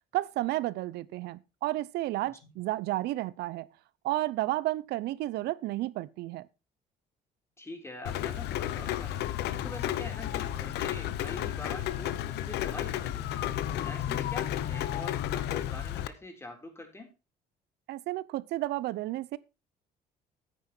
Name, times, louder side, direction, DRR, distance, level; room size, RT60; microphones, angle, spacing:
voice 1, 0.1-3.7 4.0-6.5 17.9-19.4, right 16 dB, 80° right, 0.7 m, -32 dB
voice 2, 7.6-9.3 9.6-13.5 13.7-17.1, left 2 dB, 15° left, 3.6 m, -44 dB
Rain, 8.0-16.1, left 12 dB, 85° left, 0.8 m, -32 dB
9.8 x 9.3 x 4.4 m
cardioid pair, 110°, 17 cm